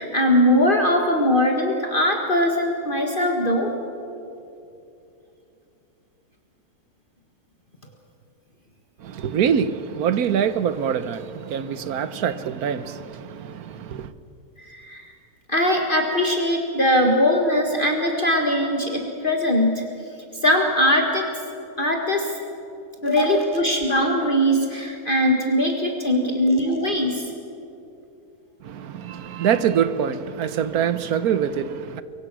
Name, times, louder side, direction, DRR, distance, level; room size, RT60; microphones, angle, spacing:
voice 1, 0.0-3.7 14.6-15.1 15.5-19.8 20.4-21.3 21.8-22.3 23.0-27.3, left 1 dB, 35° left, 1.8 m, -21 dB
voice 2, 9.0-14.1 28.6-32.0, right 8 dB, 75° right, 1.4 m, -24 dB
23.5 x 23.5 x 6.2 m
omnidirectional pair, 1.6 m